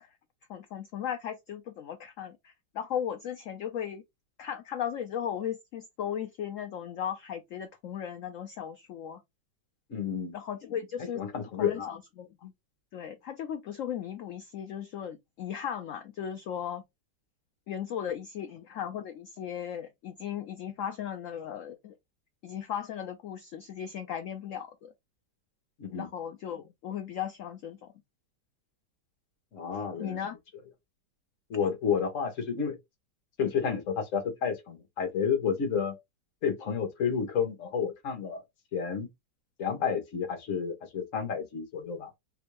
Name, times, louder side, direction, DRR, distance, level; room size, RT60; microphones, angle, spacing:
voice 1, 0.5-4.0 4.4-9.2 10.3-12.3 12.9-16.8 17.7-21.9 22.4-24.9 25.9-27.9 29.7-30.4, left 9 dB, 85° left, 0.7 m, -36 dB
voice 2, 9.9-10.3 11.1-11.9 12.4-12.5 25.8-26.1 29.5-30.2 31.5-32.8 33.4-35.9 36.4-38.4 38.7-39.1 39.6-42.1, left 6 dB, 50° left, 1.2 m, -30 dB
3.7 x 2.5 x 3.0 m
omnidirectional pair, 1.9 m